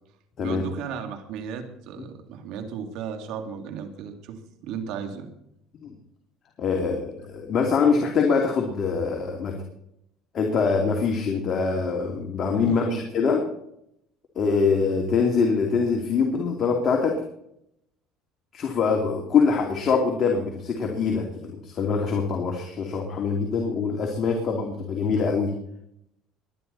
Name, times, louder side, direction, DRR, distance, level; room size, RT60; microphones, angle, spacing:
voice 1, 0.4-5.3 12.6-13.0, right 7 dB, 70° right, 6 dB, 2.7 m, -34 dB
voice 2, 6.6-9.5 10.3-13.4 14.3-17.2 18.5-25.5, left 5 dB, 40° left, 1 dB, 2.8 m, -24 dB
21.0 x 10.5 x 4.2 m, 0.75 s
cardioid pair, 115°, 0 cm